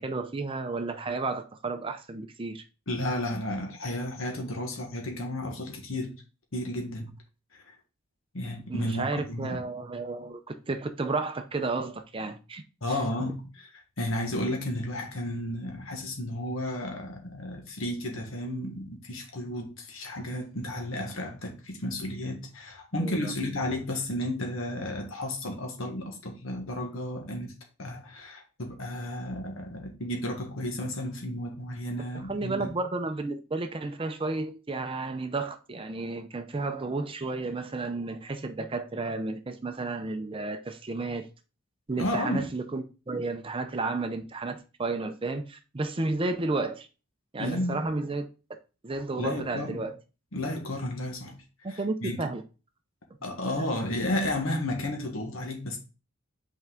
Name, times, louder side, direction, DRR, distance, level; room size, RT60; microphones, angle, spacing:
voice 1, 0.0-2.6 8.7-12.6 12.9-13.3 23.0-23.3 32.3-41.3 41.9-46.9 47.3-48.3 48.8-50.0 51.6-52.4 53.6-53.7, right 3 dB, 25° right, 0.5 m, -32 dB
voice 2, 2.9-6.1 6.5-7.1 7.5-7.7 8.3-9.6 12.8-13.7 14.0-27.5 27.8-32.8 42.0-42.4 47.4-47.9 49.2-49.9 50.3-52.3 53.2-55.8, left 1 dB, 70° left, 1.5 m, -33 dB
5.7 x 4.5 x 3.7 m
head